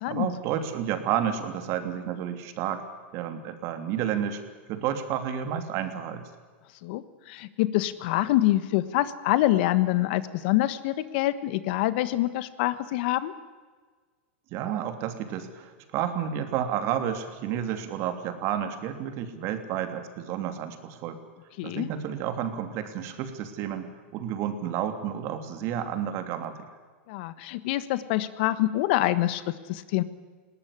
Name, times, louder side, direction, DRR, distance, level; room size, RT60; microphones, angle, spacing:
voice 1, 0.1-2.8 3.1-4.4 4.7-6.2 14.5-21.2 21.6-26.6, right 9 dB, 45° right, 8 dB, 3.1 m, -31 dB
voice 2, 7.3-13.3 21.6-21.9 27.1-30.0, left 16 dB, 60° left, 14 dB, 1.4 m, -26 dB
20.0 x 18.0 x 9.9 m, 1.5 s
hypercardioid pair, 125°, 6 cm